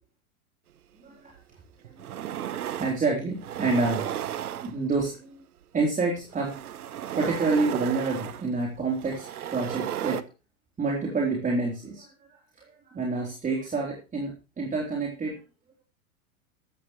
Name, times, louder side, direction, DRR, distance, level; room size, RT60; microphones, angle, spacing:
voice 1, 1.0-1.3 2.2-4.2 4.6-5.4 5.7-6.6 7.0-10.2 10.8-12.1 12.6-15.4, right 3 dB, 20° right, 0 dB, 3.7 m, -28 dB
sound 1, 1.3-1.4 1.8-3.0 3.4-5.1 6.2-10.2, right 11 dB, 85° right, 1.2 m, -34 dB
15.0 x 13.5 x 3.1 m, 0.32 s
hypercardioid pair, 110°, 44 cm